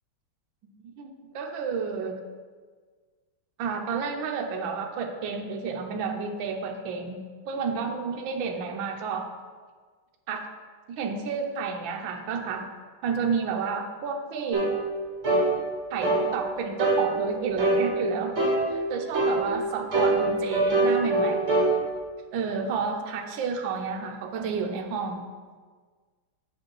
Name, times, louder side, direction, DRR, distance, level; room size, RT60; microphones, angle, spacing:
voice 1, 0.8-2.1 3.6-9.3 10.3-10.5 11.0-12.7 13.0-14.7 15.9-18.3 18.7-21.5 22.3-25.2, right 5 dB, 70° right, 3 dB, 1.4 m, -31 dB
sound 1, 14.5-14.7 15.2-15.5 16.0-16.2 16.8-17.0 17.6-17.8 18.3-18.6 19.1-19.4 19.9-21.7, right 2 dB, 30° right, 1.9 m, -22 dB
8.4 x 5.1 x 4.6 m, 1.5 s
omnidirectional pair, 2.4 m